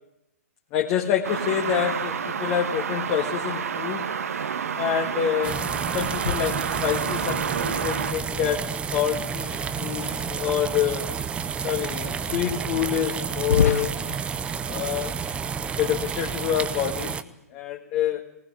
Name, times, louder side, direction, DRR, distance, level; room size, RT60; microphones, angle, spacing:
voice 1, 0.7-4.1 4.8-5.6 5.9-11.1 11.6-14.0 14.6-15.2 15.8-18.2, left 10 dB, 30° left, 1 dB, 1.8 m, -27 dB
sound 1, 1.2-8.1, right 7 dB, 60° right, 1.4 m, -29 dB
sound 2, 5.4-17.2, right 6 dB, 15° right, 0.8 m, -30 dB
sound 3, 6.0-7.4 9.2-10.6 11.4-11.5 12.1-12.2 13.3-14.2, left 7 dB, 65° left, 0.8 m, -29 dB
19.5 x 19.5 x 9.7 m, 0.83 s
figure-of-eight pair, 120°, 9 cm